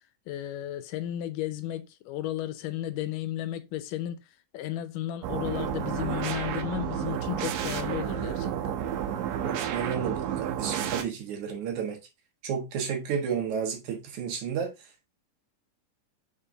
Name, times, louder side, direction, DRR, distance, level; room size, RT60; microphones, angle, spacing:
voice 1, 0.3-4.2 4.5-8.8, left 13 dB, 80° left, 2.2 m, -34 dB
sound 1, 5.2-11.0, right 9 dB, 80° right, 2.3 m, -31 dB
voice 2, 9.4-12.0 12.4-14.7, right 7 dB, 65° right, 2.6 m, -32 dB
5.7 x 4.6 x 3.7 m
omnidirectional pair, 3.8 m